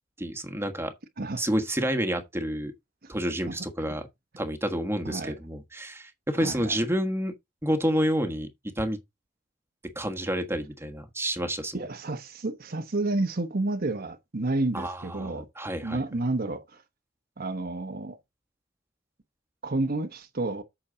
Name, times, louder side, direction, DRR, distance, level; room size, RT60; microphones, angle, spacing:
voice 1, 0.2-0.9 1.4-2.7 3.1-4.1 4.4-7.3 7.6-8.5 8.8-9.0 9.9-11.8 14.7-16.0, equal, 15° right, 1.4 m, -29 dB
voice 2, 6.4-6.8 11.7-15.5 15.8-16.8 17.4-18.2 19.6-20.6, right 2 dB, 50° right, 1.1 m, -30 dB
8.7 x 6.3 x 4.0 m
head